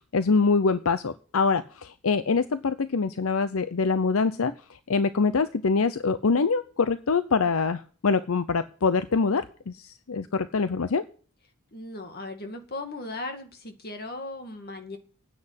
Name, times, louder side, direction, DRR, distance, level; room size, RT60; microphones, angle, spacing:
voice 1, 0.0-4.5 4.9-11.0, left 4 dB, 80° left, 12 dB, 0.7 m, -24 dB
voice 2, 11.7-15.0, left 2 dB, 50° left, 6 dB, 2.2 m, -37 dB
9.8 x 7.9 x 9.6 m, 0.42 s
head